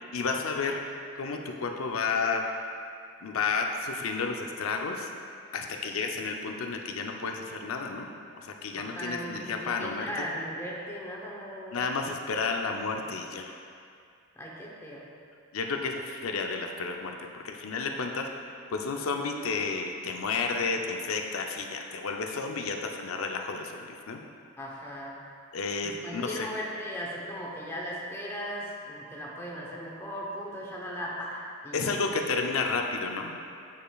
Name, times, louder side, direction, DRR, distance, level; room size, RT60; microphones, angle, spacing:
voice 1, 0.1-0.8 1.2-2.4 3.2-5.1 5.5-8.1 8.3-10.1 11.7-13.5 15.5-18.3 18.7-24.2 25.5-26.5 31.7-33.3, left 4 dB, 90° left, 3 dB, 0.6 m, -31 dB
voice 2, 8.8-11.9 14.4-15.1 24.6-25.2 25.8-31.9, equal, 10° left, -4 dB, 0.8 m, -38 dB
9.0 x 5.1 x 2.3 m, 2.3 s
head